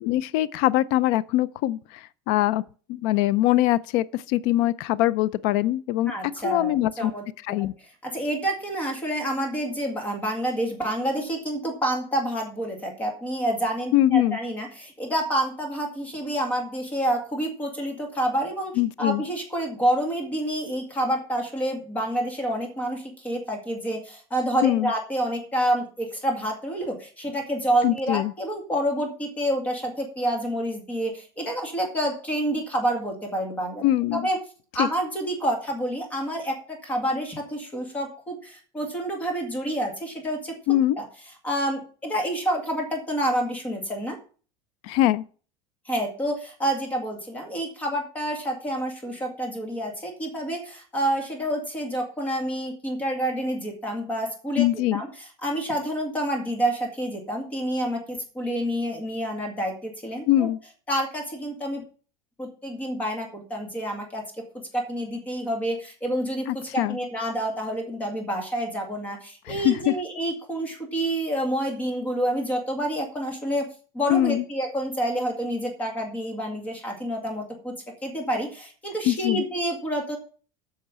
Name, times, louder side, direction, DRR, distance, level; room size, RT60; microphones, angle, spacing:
voice 1, 0.0-2.6 2.9-6.1 6.4-7.1 7.5-7.7 13.9-14.4 18.8-19.2 24.6-24.9 27.8-28.3 33.8-34.3 34.8-34.9 40.7-41.0 44.8-45.2 54.6-55.0 60.3-60.6 66.8-67.0 69.5-69.9 74.1-74.4 79.1-79.4, left 14 dB, 60° left, 0.5 m, -22 dB
voice 2, 6.1-18.7 19.0-33.9 34.1-34.4 34.7-40.6 41.0-41.1 41.4-44.2 45.9-54.7 54.9-60.5 60.9-61.8 62.4-64.2 64.7-73.7 73.9-77.7 78.0-80.2, right 1 dB, 15° left, 2.0 m, -28 dB
8.7 x 5.7 x 7.4 m
cardioid pair, 175°, 12 cm